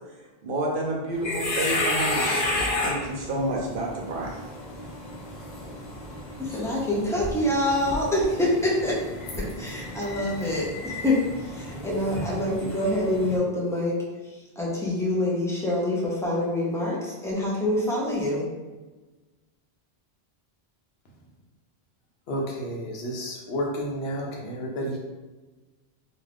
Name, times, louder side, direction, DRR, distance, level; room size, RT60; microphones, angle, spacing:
voice 1, 0.4-2.5 2.8-4.4, right 1 dB, 60° right, -1 dB, 0.7 m, -29 dB
sound 1, 1.1-13.4, left 2 dB, 55° left, 0.6 m, -32 dB
voice 2, 6.4-8.9 9.3-13.9 14.2-18.5, left 1 dB, 5° left, -5 dB, 0.4 m, -26 dB
voice 3, 22.3-25.0, equal, 75° left, -1 dB, 0.9 m, -31 dB
2.4 x 2.4 x 3.3 m, 1.2 s
omnidirectional pair, 1.1 m